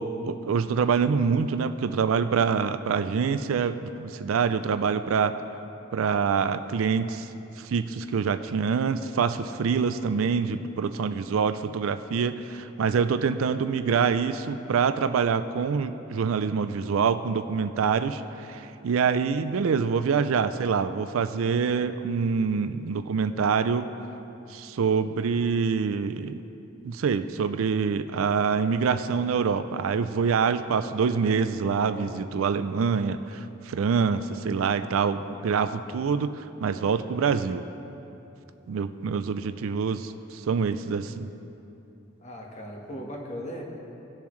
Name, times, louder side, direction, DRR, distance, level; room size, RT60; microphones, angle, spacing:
voice 1, 0.0-5.3 5.9-7.3 7.6-23.9 24.5-26.4 26.8-37.6 38.7-41.3, right 6 dB, 90° right, 11 dB, 0.4 m, -25 dB
voice 2, 42.2-43.6, equal, 35° left, -1 dB, 1.4 m, -37 dB
18.5 x 6.9 x 3.2 m, 2.9 s
head